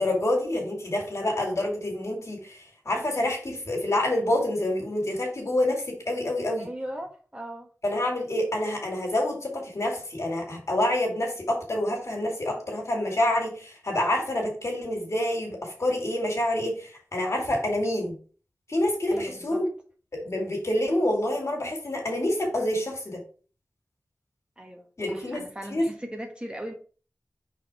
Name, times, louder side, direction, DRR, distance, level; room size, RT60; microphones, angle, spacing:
voice 1, 0.0-6.7 7.8-18.2 18.7-19.7 20.1-23.2 25.0-25.4 25.7-25.8, left 1 dB, 60° left, 1 dB, 2.6 m, -27 dB
voice 2, 6.6-7.7 19.1-19.6 24.6-26.7, equal, 15° right, 2 dB, 1.5 m, -38 dB
4.8 x 4.2 x 4.9 m, 0.39 s
cardioid pair, 50°, 6 cm